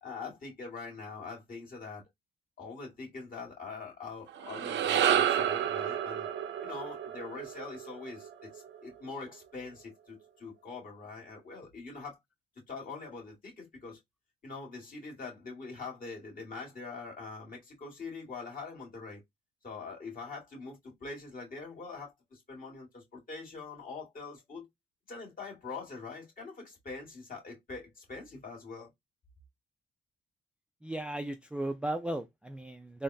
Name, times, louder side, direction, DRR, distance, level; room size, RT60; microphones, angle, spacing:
voice 1, 0.0-2.0 2.6-6.3 6.6-12.2 12.7-14.0 14.4-19.2 19.6-24.7 25.1-28.9, left 4 dB, 45° left, 1.8 m, -43 dB
sound 1, 4.3-8.8, right 9 dB, 65° right, 0.5 m, -30 dB
voice 2, 30.8-33.0, right 1 dB, 5° right, 0.3 m, -36 dB
3.6 x 2.1 x 2.6 m
cardioid pair, 90°, 20 cm